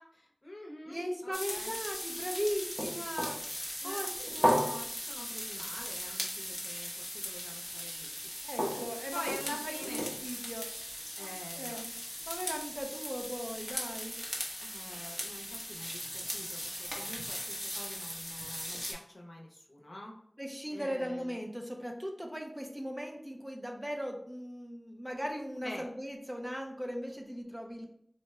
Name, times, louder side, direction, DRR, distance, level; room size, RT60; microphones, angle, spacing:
voice 1, 0.0-1.8 3.8-8.1 9.1-10.1 11.2-12.5 14.6-20.1 20.7-21.4 25.6-25.9, left 1 dB, 70° left, -1 dB, 0.7 m, -46 dB
voice 2, 0.9-3.4 3.8-4.7 8.4-9.2 9.6-10.7 11.2-11.9 12.3-14.2 20.4-27.9, equal, 10° right, 2 dB, 0.6 m, -38 dB
sound 1, 1.3-18.9, equal, 5° left, 0.9 m, -37 dB
3.9 x 2.2 x 3.1 m, 0.70 s
wide cardioid pair, 50°, 0 cm